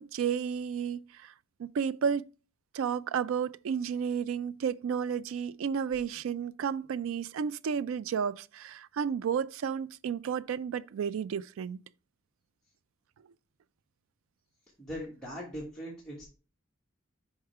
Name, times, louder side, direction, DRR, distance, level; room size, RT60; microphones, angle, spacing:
voice 1, 0.0-1.3 1.6-2.3 2.7-11.8, right 7 dB, 85° right, 0.3 m, -32 dB
voice 2, 14.8-16.2, equal, 5° left, 1.4 m, -40 dB
5.4 x 4.8 x 4.6 m
head